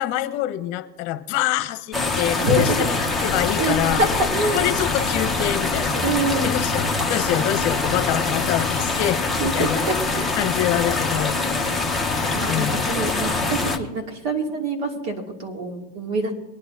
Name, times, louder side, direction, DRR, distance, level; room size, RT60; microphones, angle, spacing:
voice 1, 0.0-4.1 4.5-6.0 6.4-9.8 10.4-11.4 12.5-12.9, left 13 dB, 45° left, 10 dB, 1.1 m, -25 dB
sound 1, 1.9-13.8, left 3 dB, ahead, 1.0 m, -24 dB
voice 2, 3.6-4.6 6.0-6.5 9.4-9.7 10.2-10.3 12.3-16.3, right 3 dB, 50° right, 1 dB, 2.8 m, -26 dB
22.5 x 10.0 x 2.8 m, 1.2 s
hypercardioid pair, 110°, 49 cm